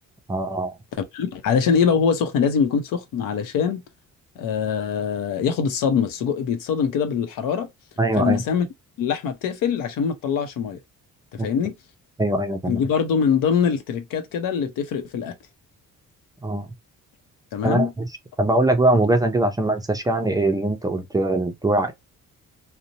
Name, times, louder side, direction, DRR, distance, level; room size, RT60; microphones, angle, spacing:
voice 1, 0.3-0.8 8.0-8.4 11.4-11.5 12.2-12.8 16.4-16.7 17.6-18.1 18.4-21.9, right 2 dB, 10° right, 0.3 m, -22 dB
voice 2, 1.1-3.8 4.4-7.7 8.2-8.7 9.0-10.8 11.3-11.7 12.6-15.3 17.5-17.9, left 7 dB, 90° left, 0.7 m, -23 dB
2.6 x 2.0 x 2.7 m
cardioid pair, 115°, 32 cm